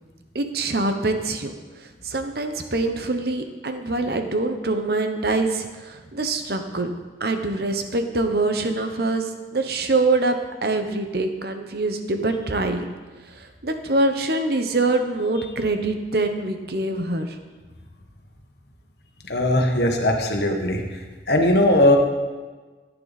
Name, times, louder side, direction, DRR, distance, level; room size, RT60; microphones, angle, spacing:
voice 1, 0.3-1.5 2.0-6.9 7.2-12.9 13.3-17.4, right 2 dB, 60° right, 6 dB, 1.0 m, -24 dB
voice 2, 19.3-20.8 21.3-22.0, left 1 dB, 65° left, 2 dB, 1.5 m, -19 dB
14.5 x 9.1 x 4.1 m, 1.3 s
head